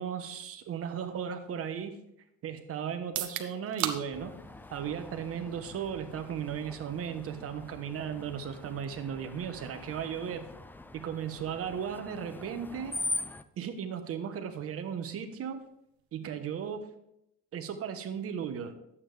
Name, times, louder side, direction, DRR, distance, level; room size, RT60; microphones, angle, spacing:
voice 1, 0.0-2.0 2.4-4.4 4.7-10.5 10.9-13.0 13.6-15.7 16.1-16.9 17.5-18.7, right 8 dB, 50° right, 8 dB, 1.3 m, -36 dB
sound 1, 3.0-16.8, right 11 dB, 75° right, 1.1 m, -45 dB
Screech, 4.1-13.4, left 2 dB, 5° left, 0.4 m, -42 dB
11.5 x 8.5 x 3.5 m, 0.79 s
cardioid pair, 115°, 29 cm